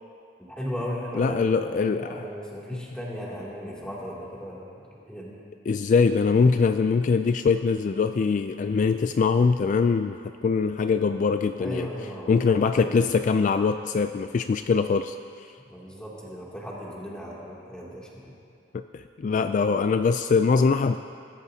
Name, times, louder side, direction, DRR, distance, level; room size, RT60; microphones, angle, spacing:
voice 1, 0.5-5.4 11.6-13.1 15.7-18.4, equal, 5° left, -6 dB, 2.6 m, -36 dB
voice 2, 1.1-2.2 5.7-11.9 12.3-15.2 18.7-21.0, left 5 dB, 45° left, 9 dB, 0.3 m, -23 dB
21.5 x 13.0 x 2.8 m, 2.4 s
head